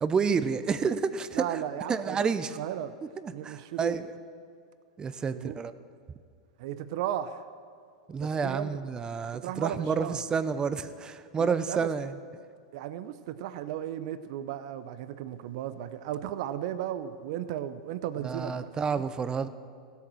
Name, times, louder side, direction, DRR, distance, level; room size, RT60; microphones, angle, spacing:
voice 1, 0.0-1.6 1.9-2.5 3.2-4.1 5.0-5.7 8.1-12.1 18.2-19.5, right 5 dB, 20° right, 13 dB, 0.7 m, -29 dB
voice 2, 1.3-2.3 2.5-2.9 3.3-4.0 5.3-5.6 6.6-7.4 8.2-8.8 9.3-10.2 11.4-11.9 12.7-19.0, right 11 dB, 60° right, 12 dB, 0.7 m, -35 dB
16.5 x 8.3 x 6.3 m, 2.3 s
hypercardioid pair, 105°, 4 cm